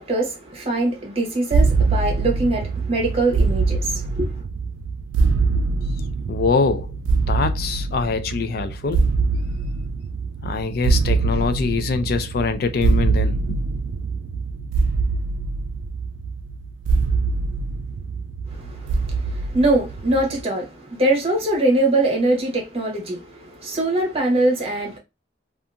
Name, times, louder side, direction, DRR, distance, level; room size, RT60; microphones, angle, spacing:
voice 1, 0.0-4.3 18.7-18.8 19.3-23.2 23.6-25.0, right 2 dB, 35° right, 0.9 m, -22 dB
sound 1, 1.5-20.4, right 4 dB, 90° right, 0.3 m, -23 dB
voice 2, 6.3-6.9 7.3-9.0 10.4-13.6, left 4 dB, 55° left, 0.3 m, -23 dB
2.7 x 2.4 x 2.3 m
head